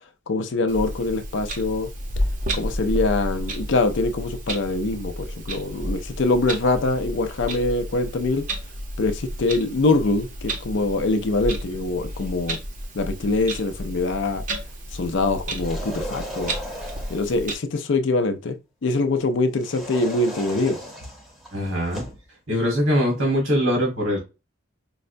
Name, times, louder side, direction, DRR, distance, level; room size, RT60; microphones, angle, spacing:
voice 1, 0.3-1.9 2.5-5.1 5.5-8.4 9.0-9.1 9.4-12.6 13.0-14.4 15.0-16.5 17.1-18.5 18.8-20.8, left 2 dB, 60° left, 0.5 m, -23 dB
Clock, 0.7-17.5, right 1 dB, 40° right, 0.7 m, -32 dB
sound 1, 15.5-17.4 19.6-22.3, equal, ahead, 0.8 m, -36 dB
voice 2, 21.5-22.0 22.5-24.2, equal, 75° right, 1.4 m, -22 dB
4.7 x 2.1 x 2.5 m
head